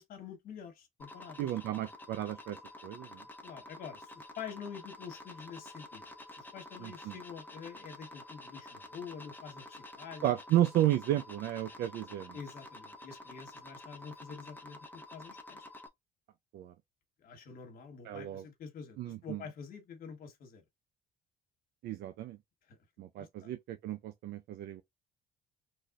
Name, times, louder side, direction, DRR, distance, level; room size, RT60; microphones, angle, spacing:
voice 1, 0.0-1.5 3.4-10.3 12.3-15.7 17.2-20.6 22.7-22.8 23.1-23.5, left 6 dB, 60° left, 1.3 m, -47 dB
sound 1, 1.0-15.9, left 1 dB, 10° left, 0.8 m, -50 dB
voice 2, 1.4-2.6 2.8-3.2 6.8-7.2 10.2-12.4 16.5-16.7 18.0-18.4 19.0-19.4 21.8-22.4 23.0-24.8, right 13 dB, 75° right, 0.5 m, -33 dB
4.1 x 3.3 x 2.4 m
cardioid pair, 110°, 17 cm